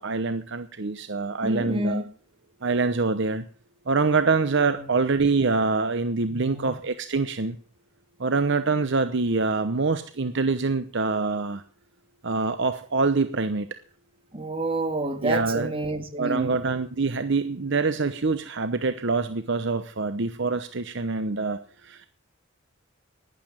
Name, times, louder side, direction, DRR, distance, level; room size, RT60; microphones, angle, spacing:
voice 1, 0.0-2.0 2.6-3.4 3.9-7.6 8.2-11.6 12.2-13.7 15.2-15.7 16.2-22.1, right 4 dB, 60° right, 0.9 m, -25 dB
voice 2, 1.4-2.1 4.7-4.9 6.3-6.8 14.3-16.6, right 1 dB, 25° right, 2.1 m, -29 dB
12.0 x 11.0 x 7.5 m
head